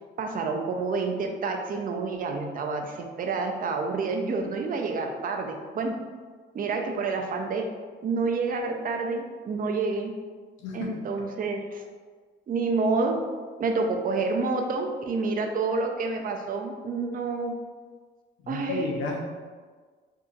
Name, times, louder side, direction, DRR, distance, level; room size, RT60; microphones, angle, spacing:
voice 1, 0.2-6.0 6.5-7.7 8.0-10.1 10.7-11.8 12.5-13.2 13.6-17.5 18.5-18.9, right 4 dB, 45° right, 3 dB, 0.5 m, -28 dB
voice 2, 10.6-10.9 18.4-19.2, left 3 dB, 75° left, 1 dB, 0.6 m, -31 dB
2.7 x 2.3 x 3.9 m, 1.5 s
cardioid pair, 90°, 20 cm